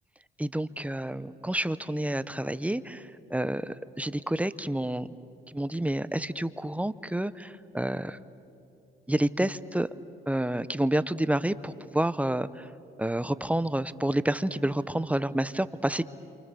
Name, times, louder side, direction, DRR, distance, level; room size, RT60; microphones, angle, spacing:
voice 1, 0.4-5.1 5.5-8.2 9.1-9.9 10.3-12.7 13.0-16.0, right 1 dB, 5° right, 15 dB, 0.7 m, -29 dB
29.0 x 28.0 x 6.9 m, 2.6 s
cardioid pair, 90°, 20 cm